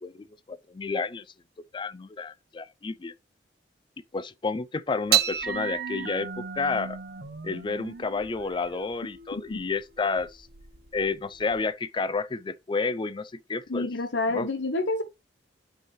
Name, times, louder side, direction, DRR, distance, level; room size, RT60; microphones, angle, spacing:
voice 1, 0.0-1.3 1.7-3.1 4.1-7.0 7.4-10.5 10.9-13.9 14.3-14.5, left 4 dB, 25° left, 0.4 m, -30 dB
sound 1, 5.1-11.7, right 10 dB, 60° right, 1.0 m, -32 dB
voice 2, 13.7-15.0, left 2 dB, 85° left, 0.8 m, -28 dB
9.0 x 4.8 x 3.1 m
head